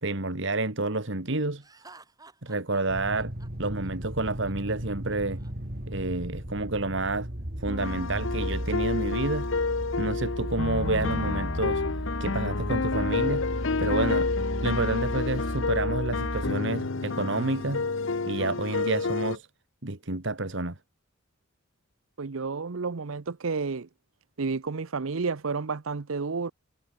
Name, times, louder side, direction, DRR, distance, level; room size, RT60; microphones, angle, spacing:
voice 1, 0.0-1.6 2.4-3.3 3.6-5.4 5.9-7.3 7.6-9.5 10.0-11.8 12.2-13.5 13.8-14.3 14.6-17.9 18.3-19.5 19.8-20.8, right 2 dB, 60° right, 2.1 m, -29 dB
Laughter, 1.6-5.5, right 3 dB, 20° right, 5.0 m, -53 dB
sound 1, 2.9-16.5, equal, 45° right, 3.3 m, -35 dB
sound 2, 7.7-19.4, left 4 dB, 65° left, 0.8 m, -30 dB
voice 2, 22.2-23.9 24.4-26.5, right 4 dB, 75° right, 0.7 m, -31 dB
head